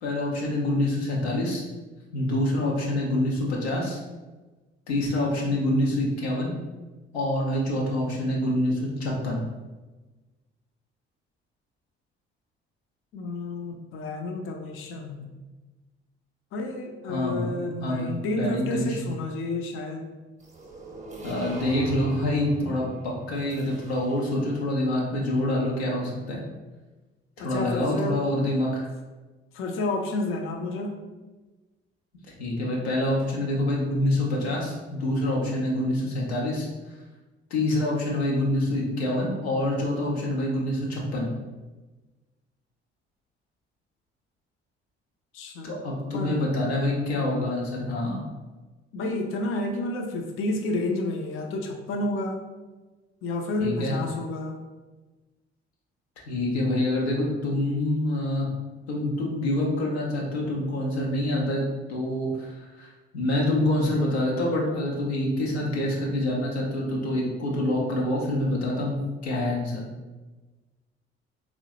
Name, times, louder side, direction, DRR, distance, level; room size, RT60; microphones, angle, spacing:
voice 1, 0.0-1.6 2.1-4.0 4.9-6.5 7.1-9.4 17.1-17.5 17.8-18.1 18.4-19.1 21.2-26.4 27.4-28.9 32.3-36.7 37.5-41.3 45.6-48.2 53.6-53.9 56.3-58.5 58.9-61.6 61.9-69.8, left 1 dB, 80° left, -3 dB, 0.7 m, -26 dB
voice 2, 13.1-15.3 16.5-20.1 27.4-28.2 29.5-31.0 45.3-45.7 46.1-46.6 48.9-52.4 53.2-54.5, left 2 dB, 40° left, 2 dB, 0.5 m, -30 dB
sound 1, 20.4-24.4, right 3 dB, 20° right, 0.8 m, -41 dB
3.6 x 2.0 x 2.9 m, 1.2 s
figure-of-eight pair, 50°, 31 cm